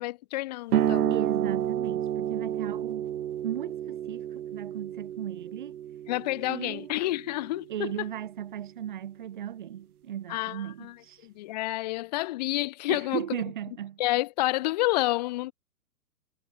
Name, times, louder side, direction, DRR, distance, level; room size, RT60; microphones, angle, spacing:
voice 1, 0.0-1.1 6.1-8.1 10.3-11.0 11.2-13.2 14.0-15.5, left 18 dB, 25° left, 1.2 m, -29 dB
sound 1, 0.7-7.9, right 10 dB, 65° right, 1.5 m, -31 dB
voice 2, 1.1-3.1 3.4-5.8 6.5-6.9 7.7-11.3 12.9-14.0, right 10 dB, 30° right, 0.6 m, -36 dB
hypercardioid pair, 165°, 48 cm